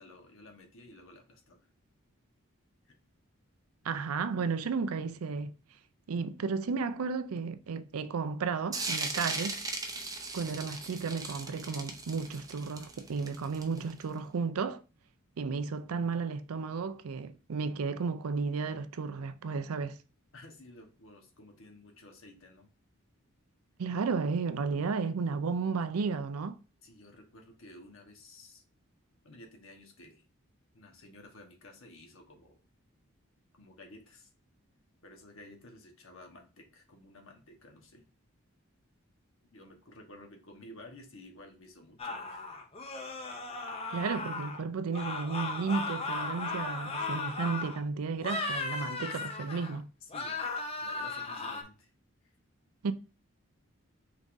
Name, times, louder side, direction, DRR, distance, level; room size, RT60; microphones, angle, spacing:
voice 1, 0.0-1.7 2.8-3.0 20.3-22.7 26.8-28.6 29.2-30.2 30.7-32.6 33.6-34.3 35.0-38.1 39.5-42.4 50.0-50.5 50.8-51.9, left 1 dB, 70° left, 1.2 m, -53 dB
voice 2, 3.8-5.5 6.1-9.6 10.3-14.8 15.4-20.0 23.8-26.6 43.9-49.9 52.8-52.9, right 5 dB, 85° right, 0.5 m, -33 dB
sound 1, 8.7-14.0, right 3 dB, 15° right, 0.6 m, -37 dB
sound 2, 42.0-44.6 44.9-47.8 48.2-49.8 50.1-51.6, left 3 dB, 25° left, 0.6 m, -36 dB
5.3 x 3.6 x 2.6 m
head